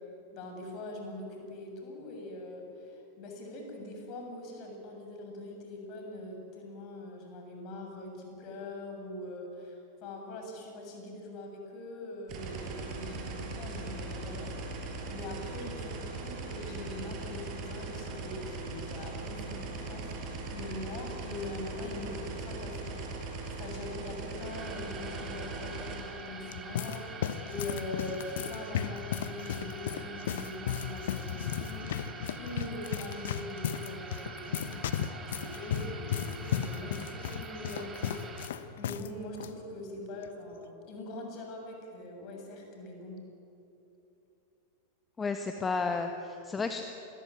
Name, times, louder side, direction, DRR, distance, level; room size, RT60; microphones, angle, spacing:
voice 1, 0.3-14.5 15.1-31.9 32.4-43.2, left 2 dB, 40° left, 2 dB, 7.5 m, -42 dB
sound 1, 12.3-26.0, right 3 dB, 40° right, 5.7 m, -39 dB
sound 2, 24.3-38.5, right 4 dB, 20° right, 3.0 m, -46 dB
sound 3, 26.2-39.1 39.3-39.5 40.2-40.5, left 9 dB, 60° left, 1.1 m, -35 dB
voice 2, 45.2-46.8, left 4 dB, 15° left, 6 dB, 1.5 m, -32 dB
27.0 x 21.0 x 9.4 m, 2.8 s
figure-of-eight pair, 90°, 0 cm